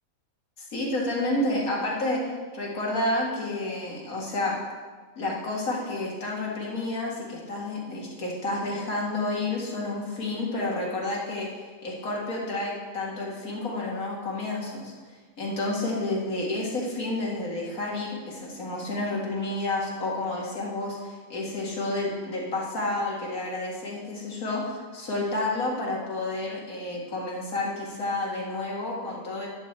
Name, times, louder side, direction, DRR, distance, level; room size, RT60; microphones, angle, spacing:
voice 1, 0.6-2.2 2.5-4.6 5.2-11.5 11.8-14.9 15.4-29.5, left 2 dB, 75° left, -3 dB, 2.4 m, -30 dB
11.5 x 4.3 x 7.5 m, 1.5 s
omnidirectional pair, 1.5 m